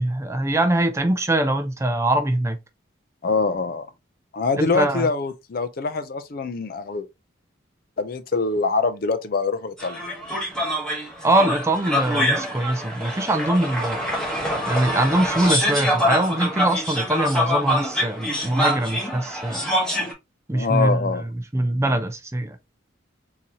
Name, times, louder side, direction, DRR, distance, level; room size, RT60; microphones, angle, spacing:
voice 1, 0.0-2.6 4.6-5.1 11.2-14.1 14.7-19.6 20.5-21.2 21.5-22.6, right 1 dB, 15° right, 0.4 m, -22 dB
voice 2, 3.2-3.9 4.3-7.1 8.0-10.0 20.5-21.3, left 4 dB, 45° left, 0.5 m, -24 dB
sound 1, 9.8-20.1, equal, 5° left, 1.0 m, -25 dB
4.0 x 2.7 x 2.9 m
head